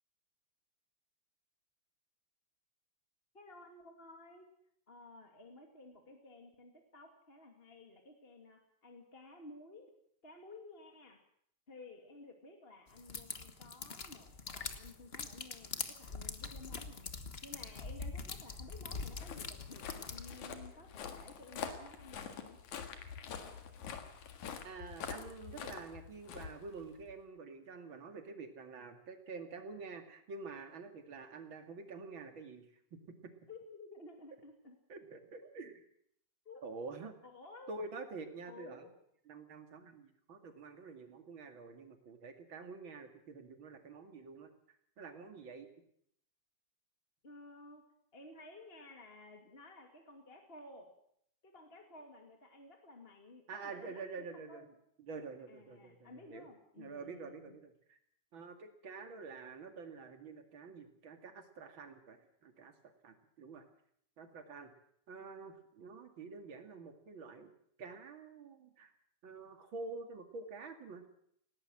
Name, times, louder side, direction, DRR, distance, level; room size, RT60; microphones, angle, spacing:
voice 1, 3.3-4.5 4.9-9.9 10.2-11.2 11.7-22.6 33.5-35.1 36.5-36.7 37.2-37.8 38.5-38.9 47.2-47.9 48.1-50.9 51.4-54.0 54.3-54.7 55.5-57.6, left 2 dB, 20° left, 3 dB, 2.2 m, -54 dB
sound 1, 13.0-20.4, left 4 dB, 55° left, 0.6 m, -44 dB
Walk footsteps, 18.9-27.1, left 7 dB, 75° left, 3.2 m, -46 dB
voice 2, 24.6-33.3 34.9-35.8 36.6-37.1 37.7-38.9 39.3-44.5 45.0-45.7 53.5-54.7 55.0-56.5 56.8-58.0 58.3-63.6 64.2-64.7 65.1-67.5 67.8-68.9 69.2-71.0, right 4 dB, 45° right, 6 dB, 2.8 m, -48 dB
19.5 x 17.5 x 7.7 m, 0.69 s
omnidirectional pair, 3.4 m